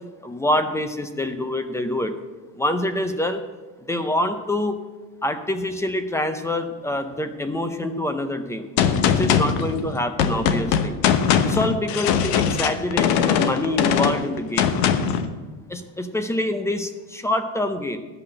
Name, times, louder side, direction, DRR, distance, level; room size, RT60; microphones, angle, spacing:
voice 1, 0.2-2.1 2.6-3.4 3.8-4.8 5.2-8.7 9.0-10.9 11.4-14.7 15.7-18.0, left 1 dB, 10° left, 9 dB, 0.5 m, -26 dB
Gunshot gunfire, 8.8-15.3, left 8 dB, 80° left, 1.0 m, -21 dB
12.0 x 5.9 x 7.5 m, 1.3 s
cardioid pair, 155°, 38 cm